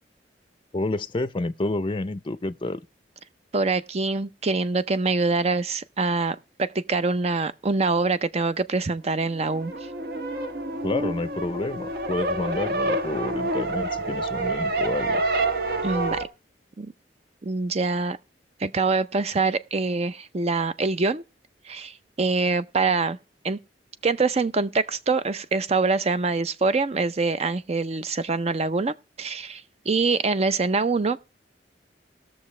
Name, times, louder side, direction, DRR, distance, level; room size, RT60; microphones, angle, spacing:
voice 1, 0.7-2.8 10.8-15.2, left 2 dB, 30° left, 0.5 m, -29 dB
voice 2, 3.5-9.7 15.8-16.3 16.8-16.9 17.4-18.2 18.6-21.2 21.7-23.2 23.4-23.6 24.0-31.2, right 3 dB, 35° right, 0.6 m, -25 dB
sound 1, 9.2-16.3, right 2 dB, 60° right, 1.2 m, -28 dB
19.0 x 6.8 x 3.2 m
head